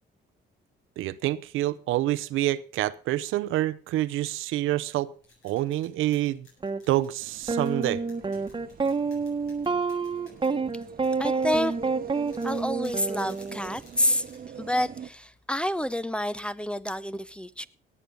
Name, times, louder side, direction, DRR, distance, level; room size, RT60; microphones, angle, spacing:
voice 1, 1.0-5.1 5.4-6.5 6.9-8.0, right 15 dB, 90° right, 0.7 m, -27 dB
sound 1, 5.1-15.4, left 3 dB, 80° left, 8.0 m, -57 dB
sound 2, 6.6-6.8 7.5-13.8, right 4 dB, 25° right, 1.2 m, -28 dB
sound 3, 7.2-15.1, right 8 dB, 45° right, 1.0 m, -43 dB
voice 2, 11.2-11.8 12.4-14.2 14.6-17.7, equal, 5° left, 0.6 m, -28 dB
18.0 x 8.6 x 5.3 m
cardioid pair, 90°, 20 cm